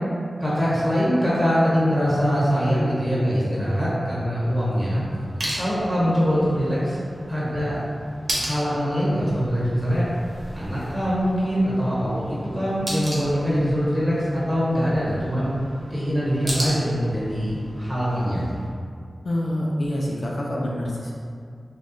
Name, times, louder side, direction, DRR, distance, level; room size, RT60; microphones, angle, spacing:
voice 1, 0.4-5.0 5.5-7.0 7.3-7.8 8.3-10.0 10.5-15.5 15.9-18.4, equal, 15° right, -9 dB, 1.1 m, -23 dB
sound 1, 4.4-18.7, right 1 dB, 50° right, 0.7 m, -36 dB
voice 2, 19.2-21.1, left 1 dB, 60° left, -4 dB, 0.4 m, -26 dB
3.3 x 2.3 x 2.6 m, 2.2 s
wide cardioid pair, 80°, 0 cm